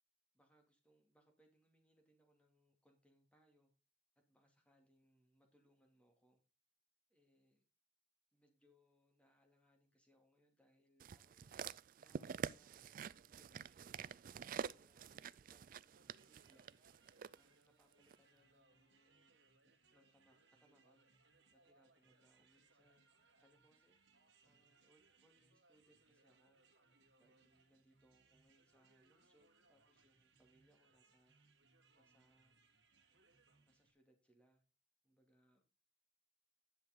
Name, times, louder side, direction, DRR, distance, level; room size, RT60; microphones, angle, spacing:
voice 1, 0.3-3.7 4.3-6.4 7.1-7.6 8.3-11.7 12.0-14.1 14.5-16.8 17.4-19.4 19.9-21.1 21.5-24.0 24.4-26.6 27.2-31.4 31.9-32.6 33.7-34.6 35.0-35.6, equal, 5° left, 3 dB, 2.4 m, -75 dB
sound 1, 11.0-17.4 18.1-18.2, right 7 dB, 45° right, 0.3 m, -47 dB
sound 2, 15.9-33.9, right 3 dB, 75° right, 2.0 m, -73 dB
10.5 x 6.4 x 3.6 m, 0.33 s
head